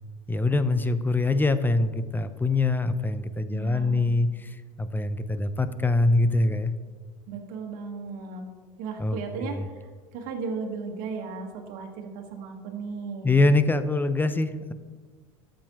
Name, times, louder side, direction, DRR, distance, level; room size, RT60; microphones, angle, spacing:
voice 1, 0.3-6.7 9.0-9.6 13.2-14.7, left 2 dB, 10° left, 11 dB, 0.7 m, -24 dB
voice 2, 3.5-4.2 7.3-8.4 8.8-13.3, right 5 dB, 60° right, 2 dB, 1.5 m, -36 dB
13.5 x 7.6 x 3.0 m, 1.5 s
hypercardioid pair, 85°, 17 cm